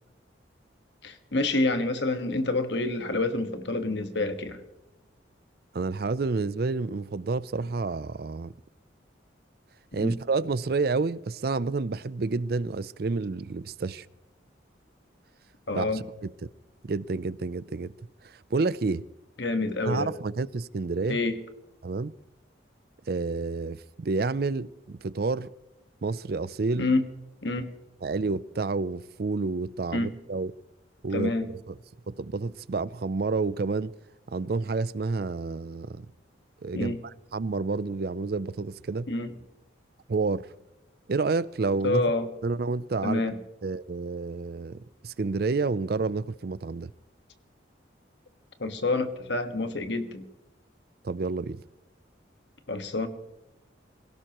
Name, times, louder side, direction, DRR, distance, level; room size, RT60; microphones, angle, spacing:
voice 1, 1.0-4.6 9.9-10.1 15.7-16.0 19.4-20.1 21.1-21.3 26.7-27.0 27.4-27.7 29.9-30.1 31.1-31.5 36.7-37.0 39.1-39.3 41.8-42.3 43.0-43.3 48.6-50.3 52.7-53.1, left 2 dB, 70° left, 1.5 m, -27 dB
voice 2, 5.7-8.5 9.9-14.1 15.7-16.0 16.4-16.5 16.8-17.9 18.2-19.0 19.9-21.2 21.8-22.1 23.1-25.5 26.0-26.9 28.0-30.5 31.0-31.3 31.7-31.8 32.1-33.9 34.3-36.1 36.6-37.0 37.3-39.1 40.1-40.5 41.1-42.0 42.4-43.2 43.6-46.9 51.0-51.6, right 3 dB, 55° right, 0.4 m, -29 dB
26.0 x 17.5 x 3.0 m
head